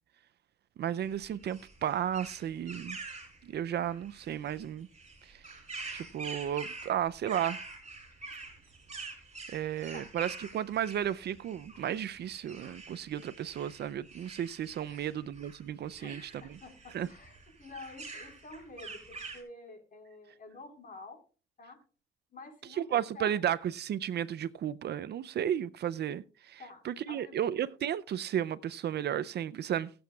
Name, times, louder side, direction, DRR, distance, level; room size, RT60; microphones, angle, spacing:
voice 1, 0.8-3.0 3.4-4.9 5.3-5.4 5.9-7.6 9.5-16.6 16.9-17.1 22.8-29.9, right 10 dB, 55° right, 0.5 m, -33 dB
sound 1, 1.0-19.4, right 3 dB, 35° right, 5.2 m, -46 dB
voice 2, 16.0-21.2 21.6-21.8 22.3-23.4 26.6-27.4, left 2 dB, 45° left, 4.3 m, -49 dB
21.0 x 7.8 x 2.3 m
cardioid pair, 90°, 20 cm